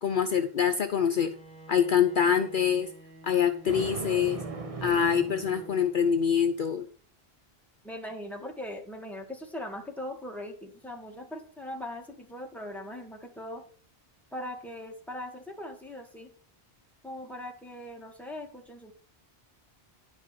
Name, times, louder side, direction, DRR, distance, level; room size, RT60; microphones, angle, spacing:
voice 1, 0.0-1.3 1.7-2.9 3.2-4.4 4.8-6.9, left 7 dB, 55° left, 7 dB, 0.9 m, -25 dB
Bowed string instrument, 1.0-6.4, right 1 dB, 85° right, 3.5 m, -48 dB
Thunder, 3.7-6.2, right 4 dB, 35° right, 1.0 m, -39 dB
voice 2, 7.8-13.6 14.3-16.3 17.0-18.9, left 1 dB, ahead, 1 dB, 2.1 m, -40 dB
10.5 x 5.4 x 6.3 m, 0.41 s
omnidirectional pair, 1.0 m